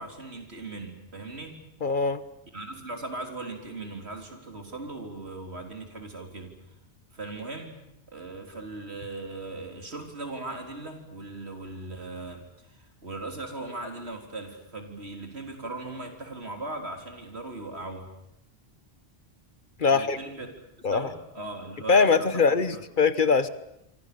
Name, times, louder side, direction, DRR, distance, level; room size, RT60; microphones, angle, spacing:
voice 1, 0.0-1.6 2.5-6.5 7.1-7.8 8.1-18.1 19.8-22.8, right 2 dB, 85° right, 4 dB, 3.9 m, -39 dB
voice 2, 1.8-2.2 19.8-20.2 20.8-21.1 21.9-23.5, left 5 dB, 55° left, 14 dB, 1.2 m, -22 dB
27.0 x 25.0 x 6.9 m, 0.84 s
omnidirectional pair, 1.1 m